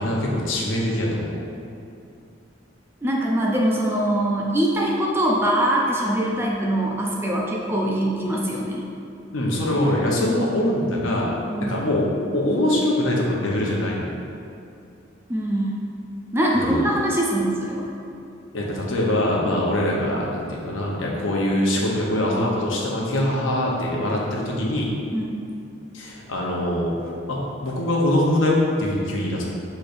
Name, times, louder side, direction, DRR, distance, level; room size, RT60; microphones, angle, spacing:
voice 1, 0.0-1.4 9.3-11.3 11.6-12.1 12.3-14.2 16.5-16.8 18.5-24.9 25.9-26.9 27.3-29.4, left 1 dB, 80° left, -3 dB, 0.8 m, -23 dB
voice 2, 3.0-8.8 11.5-11.8 15.3-15.7 16.3-17.9 25.1-25.4, right 1 dB, 10° right, -2 dB, 0.3 m, -23 dB
6.5 x 3.1 x 2.6 m, 2.6 s
head